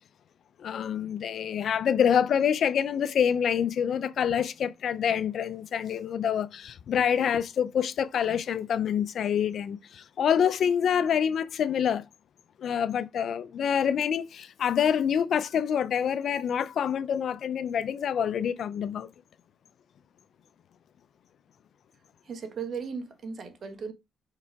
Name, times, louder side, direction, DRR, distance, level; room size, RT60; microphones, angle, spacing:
voice 1, 0.6-12.1 12.6-19.1, left 8 dB, 60° left, 0.5 m, -26 dB
voice 2, 22.2-23.9, right 5 dB, 55° right, 1.4 m, -36 dB
5.6 x 4.8 x 3.5 m
cardioid pair, 90°, 0 cm